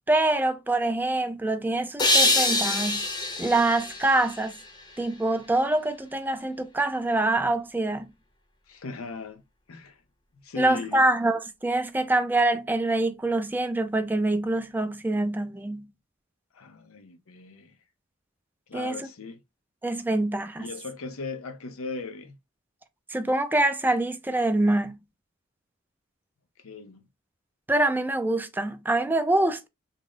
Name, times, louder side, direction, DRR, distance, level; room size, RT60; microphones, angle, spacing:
voice 1, 0.1-3.0 3.4-4.6 5.0-8.1 10.6-15.9 18.7-19.0 19.8-20.7 23.1-25.0 27.7-29.7, right 2 dB, 10° right, 0.4 m, -25 dB
sound 1, 2.0-5.1, left 2 dB, 20° left, 0.7 m, -25 dB
voice 2, 8.7-10.0 10.4-11.1 16.5-17.8 18.7-19.4 20.6-22.3 26.6-27.1, left 3 dB, 85° left, 0.7 m, -38 dB
3.7 x 2.0 x 3.7 m
head